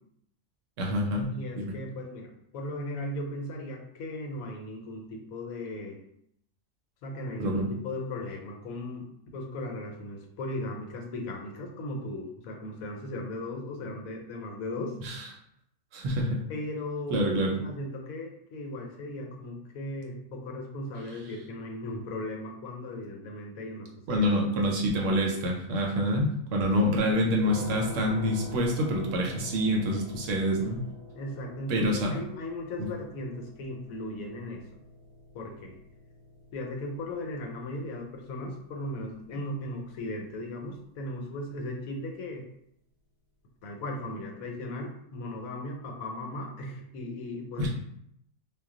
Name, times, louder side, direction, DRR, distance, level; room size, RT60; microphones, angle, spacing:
voice 1, 0.8-1.7 7.4-7.7 15.0-15.2 15.9-16.4 17.1-17.6 24.1-30.9 31.7-32.1 47.6-47.7, equal, 70° right, 0 dB, 0.9 m, -27 dB
voice 2, 1.3-6.0 7.0-15.0 16.5-24.3 31.1-34.6 35.3-35.8 36.5-42.4 43.6-47.7, left 1 dB, 80° left, 2 dB, 1.0 m, -37 dB
sound 1, 27.5-40.3, left 1 dB, 30° left, 0.8 m, -45 dB
2.3 x 2.1 x 3.6 m, 0.73 s
omnidirectional pair, 1.4 m